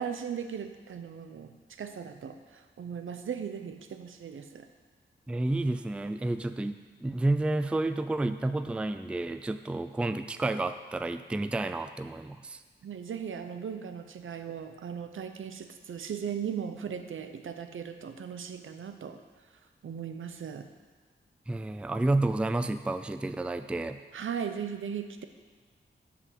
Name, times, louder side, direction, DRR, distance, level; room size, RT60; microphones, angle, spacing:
voice 1, 0.0-4.7 12.8-19.2 19.8-20.7 24.1-25.2, right 7 dB, 80° right, 7 dB, 0.7 m, -38 dB
voice 2, 5.3-12.6 21.5-24.0, right 2 dB, 5° right, 10 dB, 0.3 m, -30 dB
8.4 x 6.1 x 7.4 m, 1.4 s
wide cardioid pair, 145°, 20 cm